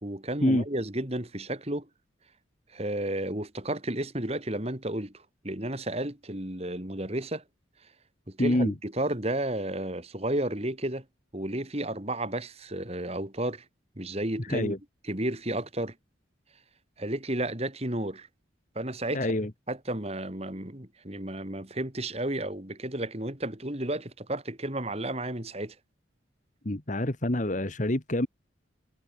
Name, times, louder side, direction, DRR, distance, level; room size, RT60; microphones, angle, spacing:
voice 1, 0.0-1.9 2.7-7.4 8.3-11.0 11.3-13.6 14.0-14.7 15.0-15.9 17.0-18.3 18.7-19.4 19.7-25.8, right 1 dB, 30° right, 2.9 m, -32 dB
voice 2, 8.4-8.7 14.5-14.8 19.1-19.5 26.6-28.3, left 1 dB, 40° left, 1.5 m, -26 dB
head